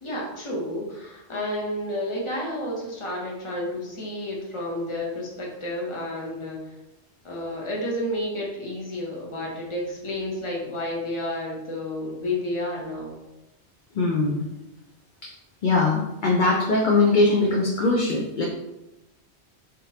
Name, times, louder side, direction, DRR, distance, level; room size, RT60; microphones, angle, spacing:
voice 1, 0.0-6.6 7.2-13.2, left 1 dB, 30° left, -2 dB, 0.9 m, -31 dB
voice 2, 13.9-14.4 15.2-15.3 15.6-18.5, left 3 dB, 55° left, -2 dB, 0.6 m, -21 dB
3.8 x 3.6 x 2.8 m, 0.95 s
omnidirectional pair, 1.2 m